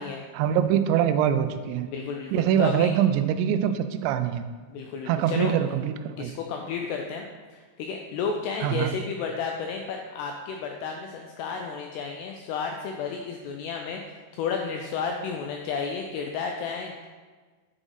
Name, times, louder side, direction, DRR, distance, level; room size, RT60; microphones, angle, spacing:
voice 1, 0.3-1.9 2.3-4.5 5.1-6.3 8.6-8.9, right 9 dB, 85° right, 10 dB, 2.7 m, -24 dB
voice 2, 1.9-2.9 4.7-5.5 6.2-17.1, left 5 dB, 90° left, 2 dB, 2.3 m, -32 dB
9.8 x 5.0 x 3.9 m, 1.4 s
omnidirectional pair, 5.4 m